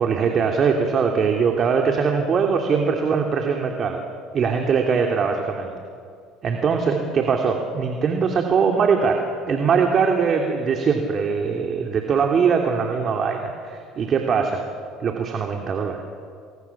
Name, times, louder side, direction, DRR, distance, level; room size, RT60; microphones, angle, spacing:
voice 1, 0.0-4.0 4.3-5.7 6.4-9.2 9.5-14.6 15.0-16.0, right 6 dB, 45° right, 2 dB, 3.0 m, -21 dB
29.0 x 21.5 x 7.4 m, 2.2 s
hypercardioid pair, 80°, 0 cm